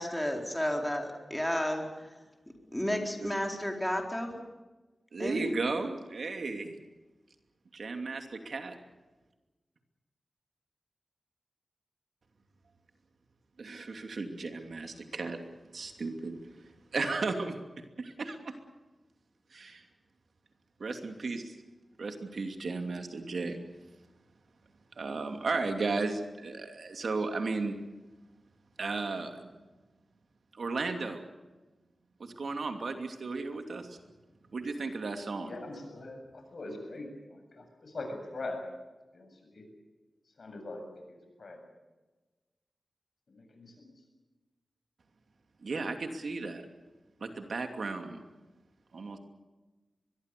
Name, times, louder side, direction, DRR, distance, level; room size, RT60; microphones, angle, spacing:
voice 1, 0.0-1.8 2.7-4.4 5.2-5.4, equal, 5° left, 2 dB, 4.2 m, -32 dB
voice 2, 5.1-6.7 7.7-8.7 13.6-15.4 15.7-16.4 16.9-18.5 19.5-19.8 20.8-21.5 22.0-23.6 25.0-27.8 28.8-29.5 30.6-31.2 32.2-34.0 34.5-35.5 45.6-46.6 47.2-48.2 48.9-49.2, right 3 dB, 70° right, 5 dB, 2.7 m, -35 dB
voice 3, 35.4-38.6 39.1-39.6 40.4-41.6 43.3-43.9, left 2 dB, 65° left, 4 dB, 7.5 m, -42 dB
23.5 x 22.0 x 6.9 m, 1.2 s
wide cardioid pair, 85°, 0 cm